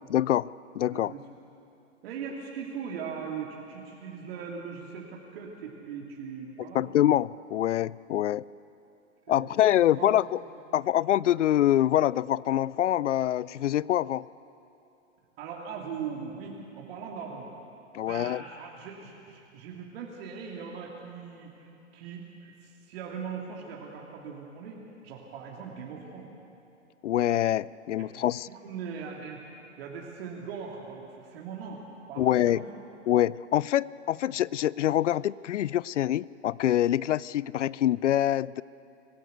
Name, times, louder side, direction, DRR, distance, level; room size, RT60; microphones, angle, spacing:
voice 1, 0.1-0.5 0.8-1.1 6.7-8.4 9.3-10.4 10.7-14.3 17.9-18.4 27.0-28.5 32.2-32.6 33.1-38.6, left 12 dB, 70° left, 22 dB, 0.5 m, -25 dB
voice 2, 0.9-1.3 2.0-6.9 8.1-8.2 9.3-9.5 10.0-10.2 15.4-17.5 18.0-24.8 25.0-26.3 28.0-29.4 29.8-32.8, right 6 dB, 50° right, -2 dB, 2.8 m, -40 dB
25.0 x 15.0 x 8.1 m, 2.8 s
figure-of-eight pair, 110°, 37 cm